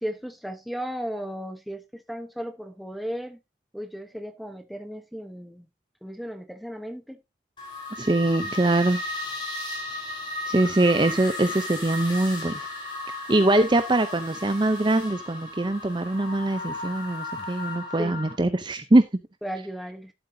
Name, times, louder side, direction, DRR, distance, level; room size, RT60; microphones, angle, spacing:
voice 1, 0.0-3.4 3.7-5.7 6.0-7.2 18.0-18.2 19.4-20.1, equal, ahead, 0.9 m, -35 dB
sound 1, 7.6-18.3, left 1 dB, 25° left, 4.8 m, -35 dB
voice 2, 8.0-9.0 10.4-12.6 13.3-19.0, right 2 dB, 25° right, 0.5 m, -22 dB
12.5 x 7.9 x 2.7 m
head